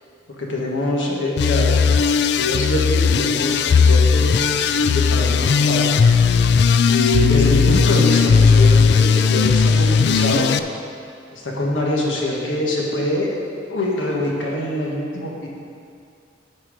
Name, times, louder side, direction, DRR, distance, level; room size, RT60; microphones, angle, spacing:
voice 1, 0.4-5.9 6.8-10.5 11.3-13.3 13.7-15.5, left 1 dB, 90° left, -3 dB, 1.6 m, -24 dB
sound 1, 1.4-10.6, left 5 dB, 60° left, 0.3 m, -16 dB
13.0 x 4.4 x 5.1 m, 2.4 s
head